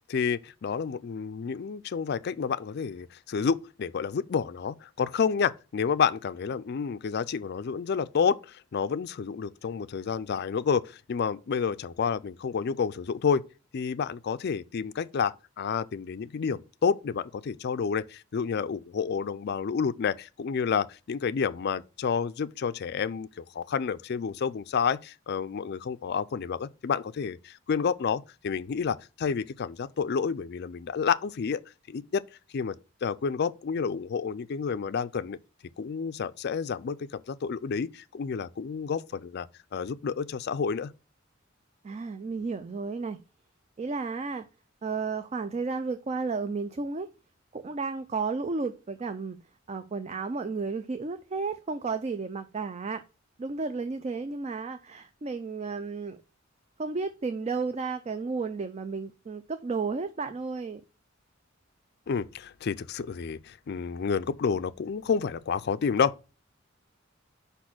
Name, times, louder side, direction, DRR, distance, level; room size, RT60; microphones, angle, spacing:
voice 1, 0.1-13.4 13.7-31.6 31.9-32.2 32.5-32.7 33.0-35.4 35.8-39.5 39.7-40.9 62.1-66.1, left 6 dB, 55° left, 0.4 m, -29 dB
voice 2, 41.8-43.2 43.8-44.5 44.8-47.1 47.5-49.4 49.7-53.0 53.4-56.2 56.8-60.8, right 4 dB, 35° right, 0.4 m, -33 dB
5.4 x 4.2 x 5.9 m
head